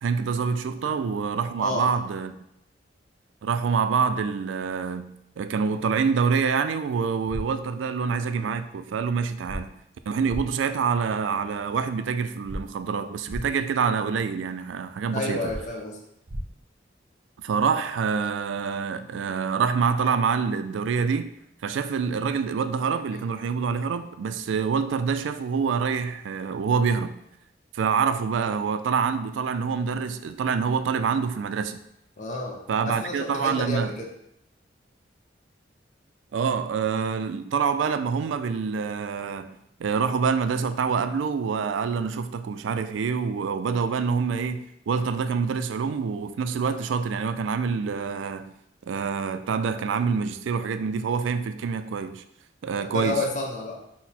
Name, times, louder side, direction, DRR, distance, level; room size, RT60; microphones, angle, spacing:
voice 1, 0.0-2.3 3.4-9.7 10.1-15.5 17.4-21.3 21.6-27.2 27.7-31.8 32.7-34.0 36.3-48.5 48.9-52.2 52.6-53.2, right 5 dB, 90° right, 0.3 m, -26 dB
sound 1, 7.3-7.4 9.5-9.6 10.3-10.4 12.5-12.6 13.3-13.4 15.5-15.6 16.3-16.4, equal, 45° right, 0.7 m, -32 dB
voice 2, 15.1-16.0 32.2-32.6 32.8-34.1 52.9-53.8, left 2 dB, 40° left, 0.7 m, -30 dB
6.0 x 2.1 x 4.2 m
head